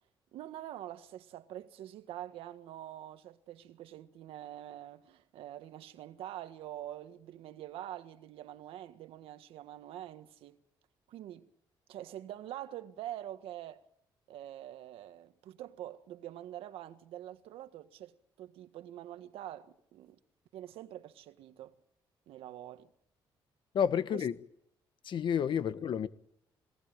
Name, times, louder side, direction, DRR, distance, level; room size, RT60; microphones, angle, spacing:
voice 1, 0.3-10.6 11.1-11.5 11.9-13.8 14.3-20.2 20.5-21.7 22.3-22.9 24.1-24.3 25.5-25.6, right 12 dB, 85° right, 1.6 m, -45 dB
voice 2, 23.7-24.3 25.0-26.1, left 8 dB, 60° left, 1.4 m, -30 dB
23.5 x 19.0 x 9.0 m
cardioid pair, 90°, 9 cm